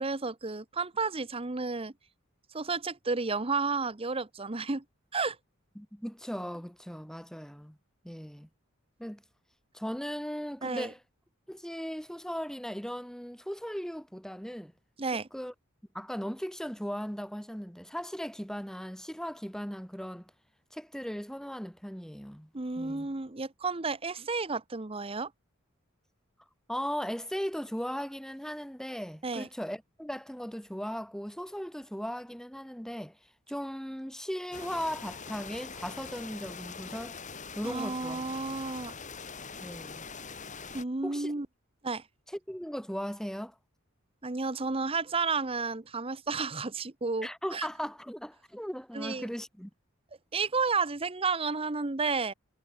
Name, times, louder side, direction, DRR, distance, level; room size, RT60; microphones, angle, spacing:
voice 1, 0.0-1.9 2.5-4.8 5.1-5.4 10.6-10.9 15.0-15.3 22.5-25.3 29.2-29.5 37.6-38.9 40.7-41.5 41.8-42.0 44.2-47.7 48.9-49.3 50.3-52.3, right 4 dB, 25° right, 0.9 m, -32 dB
voice 2, 5.8-7.8 8.0-8.5 9.0-9.2 9.7-11.0 11.5-14.7 15.3-15.5 15.9-20.3 20.7-22.5 22.8-23.1 26.7-33.2 33.5-37.2 37.6-38.5 39.6-40.1 41.0-41.3 42.5-43.5 47.2-49.7, equal, 5° left, 3.5 m, -37 dB
sound 1, 34.5-40.8, left 5 dB, 35° left, 4.2 m, -43 dB
head